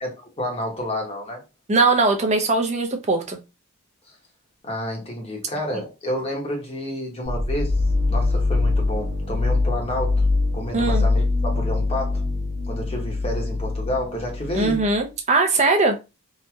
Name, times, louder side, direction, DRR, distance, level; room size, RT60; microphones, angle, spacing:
voice 1, 0.0-1.4 4.1-4.2 4.6-7.8 8.1-10.3 10.5-12.3 12.7-14.8, left 1 dB, 25° left, 0.9 m, -30 dB
voice 2, 1.7-3.4 10.7-11.0 14.5-16.0, right 3 dB, 30° right, 0.5 m, -20 dB
sound 1, 7.2-15.0, left 3 dB, 50° right, 0.9 m, -23 dB
2.9 x 2.6 x 2.2 m
head